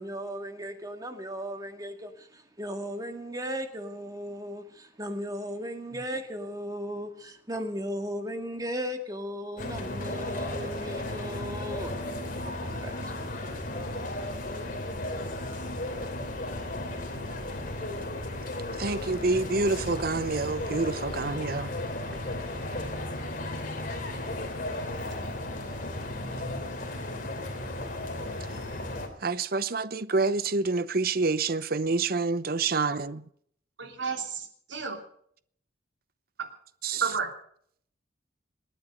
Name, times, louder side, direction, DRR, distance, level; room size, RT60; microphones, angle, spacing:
voice 1, 0.0-11.9 12.4-13.3, equal, 20° right, 1.9 m, -36 dB
sound 1, 9.6-29.1, left 1 dB, 45° left, 3.2 m, -35 dB
voice 2, 18.8-21.7 29.2-33.2 36.8-37.0, right 3 dB, 50° right, 0.8 m, -27 dB
voice 3, 33.8-35.0 36.4-36.5 36.9-37.3, right 5 dB, 70° right, 3.0 m, -32 dB
27.0 x 9.6 x 5.3 m
head